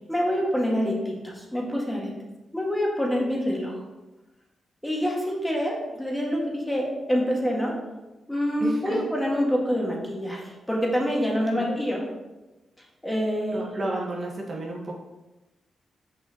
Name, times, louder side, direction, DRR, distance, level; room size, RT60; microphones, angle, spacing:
voice 1, 0.1-2.1 2.5-3.7 4.8-7.7 8.3-10.4 10.7-12.0 13.0-13.6, equal, 10° left, -2 dB, 1.8 m, -26 dB
voice 2, 8.6-9.0 11.5-11.8 13.5-14.9, right 1 dB, 50° right, -2 dB, 1.4 m, -31 dB
6.5 x 5.5 x 2.9 m, 1.1 s
cardioid pair, 65°, 0 cm